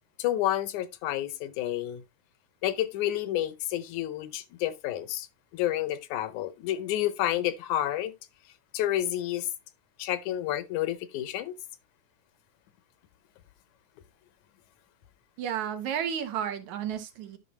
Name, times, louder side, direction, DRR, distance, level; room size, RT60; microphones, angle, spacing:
voice 1, 0.2-2.0 2.6-5.3 5.5-8.1 8.7-9.5 10.0-11.6, left 12 dB, 80° left, 2.1 m, -30 dB
voice 2, 15.4-17.4, right 9 dB, 75° right, 2.4 m, -32 dB
11.0 x 5.8 x 2.9 m
omnidirectional pair, 3.5 m